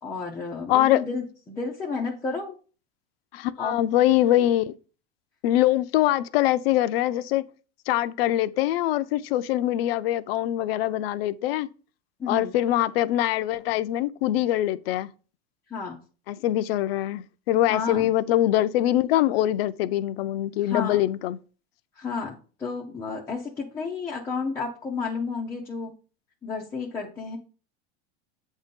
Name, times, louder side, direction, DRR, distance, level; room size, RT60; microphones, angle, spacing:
voice 1, 0.0-2.6 3.6-3.8 12.2-12.5 15.7-16.0 17.7-18.1 20.6-21.0 22.0-22.3 22.6-25.9 26.4-27.4, left 4 dB, 10° left, 0.4 m, -31 dB
voice 2, 0.7-1.0 3.3-4.7 5.4-7.4 7.9-11.7 12.3-15.1 16.3-21.4, left 13 dB, 65° left, 0.5 m, -23 dB
8.0 x 2.7 x 5.1 m
supercardioid pair, 165°, 32 cm